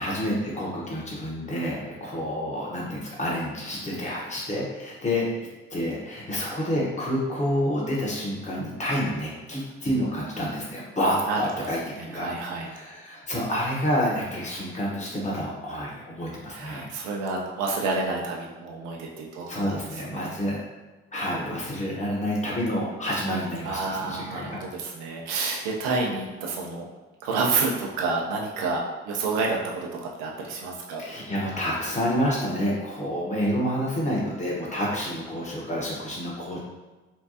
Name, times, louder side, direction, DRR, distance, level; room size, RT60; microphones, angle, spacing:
voice 1, 0.0-5.3 5.7-12.3 12.6-16.9 19.5-20.6 21.1-24.6 31.0-36.6, equal, 20° left, -5 dB, 1.2 m, -28 dB
voice 2, 11.3-11.7 11.9-12.7 16.5-19.8 20.1-20.4 23.6-26.8 27.2-31.0, right 3 dB, 70° right, -1 dB, 0.7 m, -29 dB
4.5 x 2.3 x 2.8 m, 1.2 s
figure-of-eight pair, 40°, 31 cm